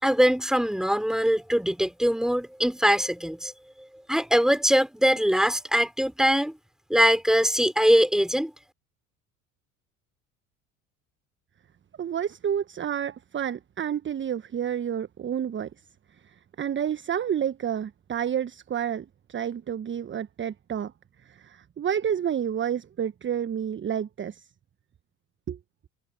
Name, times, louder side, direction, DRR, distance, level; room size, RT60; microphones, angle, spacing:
voice 1, 0.0-3.5 3.8-6.5 6.9-8.5, equal, ahead, 4.9 m, -22 dB
voice 2, 12.0-15.7 16.2-20.9 21.2-24.5 25.5-25.6, right 9 dB, 25° right, 1.3 m, -30 dB
figure-of-eight pair, 65°, 42 cm